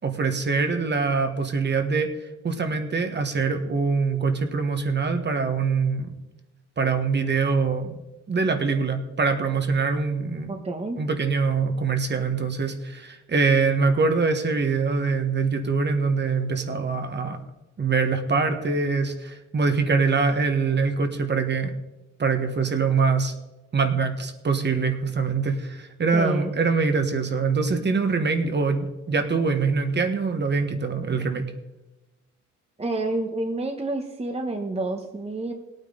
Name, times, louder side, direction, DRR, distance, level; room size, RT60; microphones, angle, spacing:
voice 1, 0.0-6.1 6.8-8.0 8.3-10.5 11.0-17.4 17.8-21.7 22.2-23.3 23.7-31.5, right 4 dB, 35° right, 6 dB, 1.4 m, -24 dB
voice 2, 10.5-11.0 26.1-26.5 32.8-35.5, right 2 dB, 20° right, 4 dB, 1.1 m, -29 dB
17.5 x 9.2 x 3.9 m, 1.0 s
cardioid pair, 90°, 30 cm